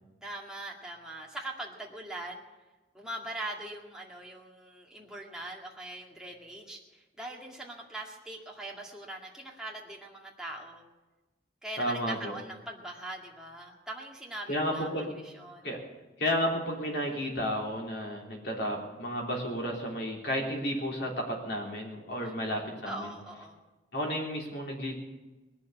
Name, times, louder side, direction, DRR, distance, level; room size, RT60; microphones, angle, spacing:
voice 1, 0.2-2.4 2.9-10.8 11.6-15.7 22.2-23.6, right 1 dB, 5° right, -2 dB, 2.1 m, -42 dB
voice 2, 11.8-12.3 14.5-15.2 15.6-15.8 16.2-23.1 23.9-24.9, equal, 60° left, 0 dB, 3.4 m, -32 dB
20.0 x 7.1 x 9.5 m, 1.1 s
head